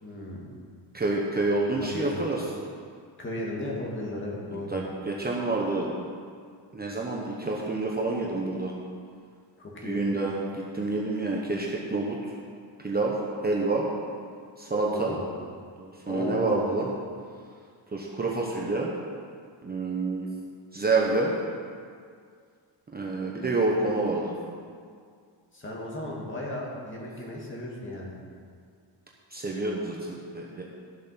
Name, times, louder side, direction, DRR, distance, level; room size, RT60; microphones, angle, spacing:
voice 1, 0.0-0.5 1.7-2.2 3.2-4.8 9.6-10.0 14.9-15.3 16.1-16.7 25.5-28.1, left 1 dB, 25° left, -3 dB, 2.1 m, -35 dB
voice 2, 0.9-2.4 4.5-5.9 6.7-8.7 9.8-12.2 12.8-13.2 13.4-13.8 14.6-15.2 15.8-16.9 17.9-18.9 19.6-20.3 20.7-21.3 22.9-24.3 29.3-30.6, right 3 dB, 20° right, -3 dB, 1.0 m, -28 dB
13.0 x 7.3 x 5.8 m, 2.1 s
wide cardioid pair, 175°, 44 cm